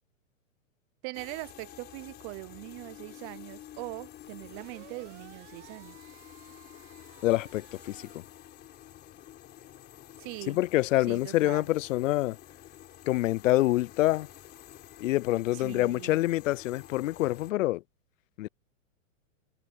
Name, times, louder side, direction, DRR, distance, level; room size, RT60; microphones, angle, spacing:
voice 1, 1.0-6.0 10.2-10.6 11.1-11.7 15.5-16.2, right 26 dB, 30° right, 0.6 m, -41 dB
sound 1, 1.1-17.5, left 12 dB, 25° left, 4.7 m, -50 dB
sound 2, 4.4-8.2, right 15 dB, 60° right, 2.1 m, -55 dB
voice 2, 7.2-8.2 10.5-12.4 13.1-14.3 15.0-17.8 18.4-18.5, left 16 dB, 70° left, 0.5 m, -26 dB
hypercardioid pair, 145°, 41 cm